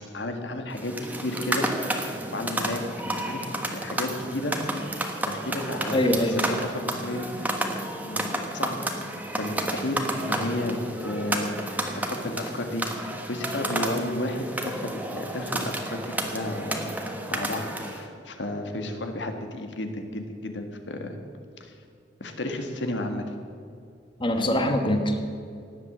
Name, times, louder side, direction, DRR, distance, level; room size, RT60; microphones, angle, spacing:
voice 1, 0.1-1.7 2.3-2.8 3.2-4.6 5.3-7.6 8.0-8.8 9.4-11.6 12.1-16.9 17.3-21.2 21.6-21.7 22.2-23.2 24.3-24.7, left 1 dB, 80° left, 5 dB, 1.7 m, -32 dB
sound 1, 0.7-18.0, right 1 dB, 10° right, 1.3 m, -31 dB
voice 2, 5.9-6.4 24.2-25.2, left 1 dB, 30° left, 5 dB, 1.3 m, -23 dB
18.5 x 8.0 x 7.4 m, 2.4 s
head